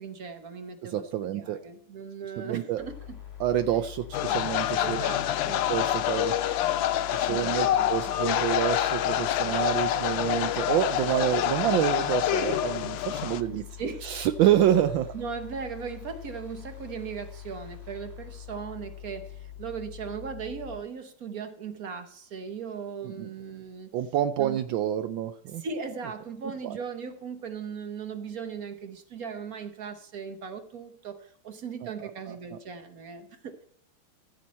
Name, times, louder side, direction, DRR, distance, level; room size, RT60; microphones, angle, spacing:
voice 1, 0.0-3.2 4.8-5.6 7.2-7.9 13.5-14.1 15.1-23.9 24.4-24.6 25.6-33.6, right 6 dB, 55° right, 8 dB, 1.2 m, -38 dB
voice 2, 0.8-1.6 2.4-2.8 3.4-5.0 5.7-6.3 7.1-13.7 14.0-15.1 23.0-23.3 23.9-25.6 26.6-26.8 31.8-32.6, right 11 dB, 75° right, 11 dB, 1.2 m, -28 dB
sound 1, 2.8-20.8, left 11 dB, 30° left, 3.0 m, -44 dB
sound 2, 4.1-13.4, left 11 dB, 70° left, 1.3 m, -27 dB
15.0 x 7.5 x 4.2 m, 0.64 s
omnidirectional pair, 2.4 m